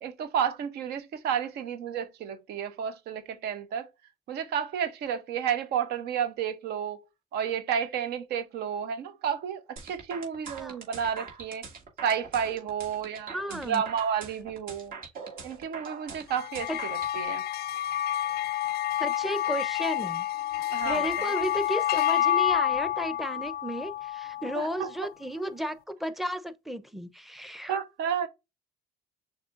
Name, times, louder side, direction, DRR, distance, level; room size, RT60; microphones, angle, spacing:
voice 1, 0.0-3.9 4.3-7.0 7.3-11.6 12.0-14.9 15.4-17.4 20.7-21.3 24.5-24.9 27.7-28.3, right 8 dB, 75° right, 0.8 m, -31 dB
sound 1, 9.8-17.1, right 5 dB, 60° right, 2.0 m, -43 dB
voice 2, 13.3-13.8 16.7-16.8 19.0-20.3 20.8-27.8, equal, ahead, 0.6 m, -33 dB
sound 2, 16.3-24.9, left 11 dB, 65° left, 0.4 m, -29 dB
6.4 x 2.8 x 2.4 m
cardioid pair, 110°, 17 cm